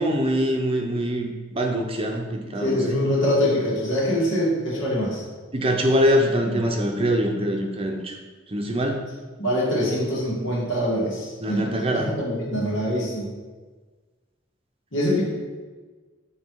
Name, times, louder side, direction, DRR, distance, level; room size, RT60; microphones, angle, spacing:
voice 1, 0.0-3.0 5.5-8.1 8.5-9.0 11.4-12.1, equal, 30° right, 2 dB, 0.7 m, -23 dB
voice 2, 2.6-5.2 6.2-6.6 9.4-13.3 14.9-15.2, equal, 85° left, -5 dB, 2.1 m, -24 dB
7.6 x 3.4 x 4.6 m, 1.4 s
head